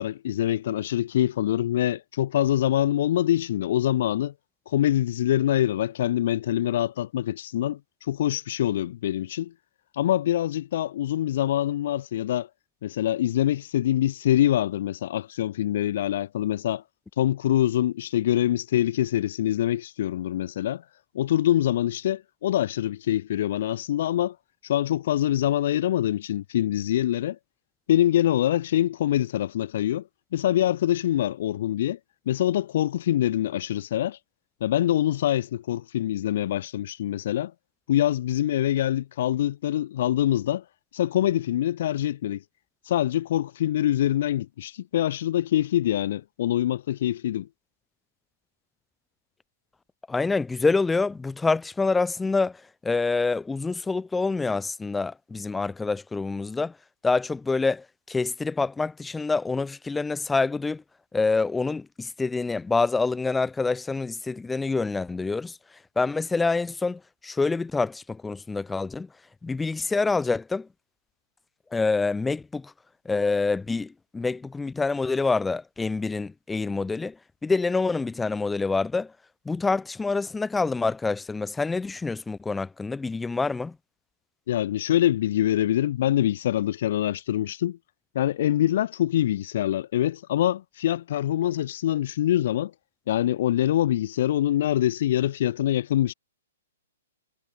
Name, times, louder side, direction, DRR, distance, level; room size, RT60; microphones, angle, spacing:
voice 1, 0.0-4.3 4.7-9.5 9.9-12.5 12.8-16.8 17.2-20.8 21.1-24.4 24.6-27.4 27.9-30.0 30.3-32.0 32.3-34.2 34.6-37.5 37.9-40.6 40.9-42.4 42.9-47.5 84.5-87.8 88.2-92.7 93.1-96.1, left 12 dB, 40° left, 1.9 m, -24 dB
voice 2, 50.1-52.6 52.8-56.7 57.0-60.8 61.1-65.6 66.0-69.1 69.4-70.7 71.7-72.7 73.0-77.2 77.4-79.1 79.4-83.7, left 3 dB, 5° left, 2.7 m, -26 dB
hypercardioid pair, 175°, 0 cm